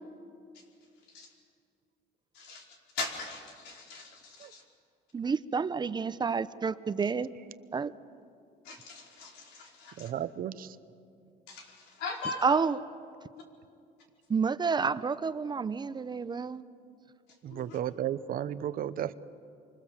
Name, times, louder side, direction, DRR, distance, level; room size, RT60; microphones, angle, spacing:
voice 1, 2.3-2.7 2.9-4.6 8.6-10.1 11.5-12.6 13.3-13.4 17.4-17.8, left 3 dB, 90° left, 1 dB, 4.9 m, -40 dB
voice 2, 5.1-7.3 7.7-7.9 12.4-12.8 14.3-16.6, right 5 dB, 25° right, 14 dB, 0.7 m, -29 dB
voice 3, 10.0-10.8 17.4-19.1, right 10 dB, 60° right, 14 dB, 0.9 m, -34 dB
27.5 x 25.5 x 7.4 m, 2.4 s
cardioid pair, 110°, 17 cm